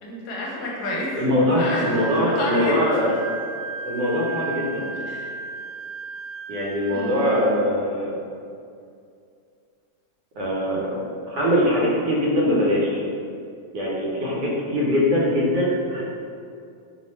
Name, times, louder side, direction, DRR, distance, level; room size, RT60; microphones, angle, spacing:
voice 1, 0.0-1.1 1.5-1.9 2.4-2.8 5.1-5.3 6.9-7.3, left 1 dB, 70° left, -3 dB, 1.1 m, -29 dB
voice 2, 1.2-3.1 3.8-4.9 6.5-8.2 10.3-13.0 13.7-16.1, left 1 dB, 75° right, -5 dB, 1.3 m, -22 dB
Wind instrument woodwind instrument, 1.8-7.6, right 4 dB, 45° left, 0.8 m, -35 dB
3.1 x 2.1 x 4.2 m, 2.4 s
omnidirectional pair, 1.9 m